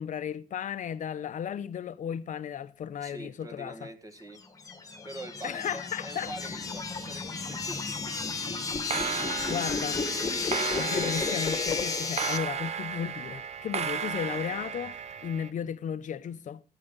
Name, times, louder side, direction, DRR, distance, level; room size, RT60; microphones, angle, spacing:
voice 1, 0.0-3.9 5.4-6.3 9.1-10.0 10.8-16.6, left 8 dB, 60° left, 0.7 m, -35 dB
voice 2, 3.0-4.4 5.0-8.1, right 1 dB, 25° right, 1.8 m, -44 dB
sound 1, 4.4-12.4, left 4 dB, 25° left, 1.6 m, -32 dB
sound 2, 6.2-7.1 7.4-7.8 8.7-15.5, right 7 dB, 50° right, 0.8 m, -35 dB
15.5 x 9.1 x 4.0 m
cardioid pair, 140°, 15 cm